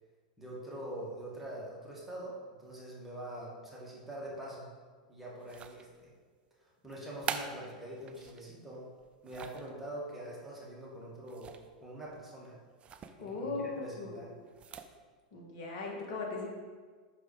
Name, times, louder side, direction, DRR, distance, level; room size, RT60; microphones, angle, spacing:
voice 1, 0.4-4.7 5.1-6.1 6.6-8.8 9.2-12.6 13.2-14.3, right 1 dB, 5° right, -6 dB, 2.1 m, -44 dB
sound 1, 5.4-6.1 6.9-8.4 9.0-9.7 11.3-11.8 12.1-12.2 12.8-13.2 14.5-15.0, right 6 dB, 25° right, 0.5 m, -43 dB
voice 2, 13.2-14.1 15.3-16.5, left 3 dB, 55° left, -1 dB, 1.9 m, -38 dB
6.0 x 4.8 x 4.8 m, 1.5 s
hypercardioid pair, 100°, 4 cm